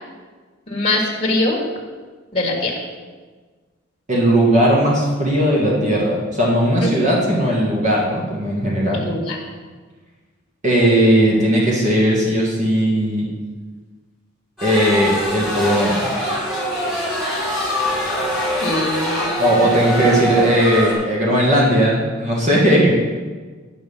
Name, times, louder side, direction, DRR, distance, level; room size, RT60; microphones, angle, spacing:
voice 1, 0.7-1.6 2.3-2.7 6.8-6.9 8.9-9.4 18.6-19.9, left 2 dB, 25° left, -3 dB, 1.7 m, -22 dB
voice 2, 4.1-9.0 10.6-13.3 14.6-16.1 19.4-23.0, equal, 35° right, -4 dB, 1.6 m, -17 dB
sound 1, 14.6-20.9, right 1 dB, ahead, 3.2 m, -23 dB
9.7 x 6.7 x 5.4 m, 1.4 s
head